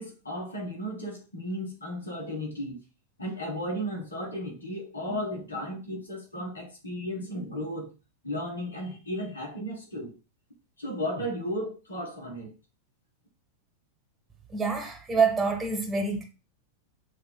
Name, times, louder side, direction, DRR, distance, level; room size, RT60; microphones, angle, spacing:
voice 1, 0.0-2.8 3.2-7.9 8.2-10.2 10.8-12.5, equal, 75° left, 1.5 m, -34 dB
voice 2, 14.5-16.2, right 4 dB, 15° right, 1.2 m, -26 dB
6.4 x 2.8 x 2.2 m
figure-of-eight pair, 90°, 0 cm